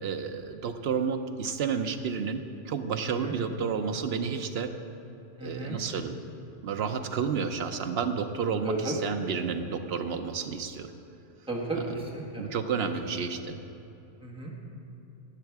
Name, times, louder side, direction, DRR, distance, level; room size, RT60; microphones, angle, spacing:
voice 1, 0.0-4.7 5.4-6.2 6.6-10.9 12.4-13.6, right 6 dB, 65° right, 8 dB, 0.9 m, -31 dB
voice 2, 3.0-3.4 5.4-5.8 8.6-9.1 11.5-12.5 14.2-14.5, right 2 dB, 5° right, -2 dB, 1.4 m, -34 dB
12.0 x 8.7 x 4.7 m, 3.0 s
omnidirectional pair, 1.2 m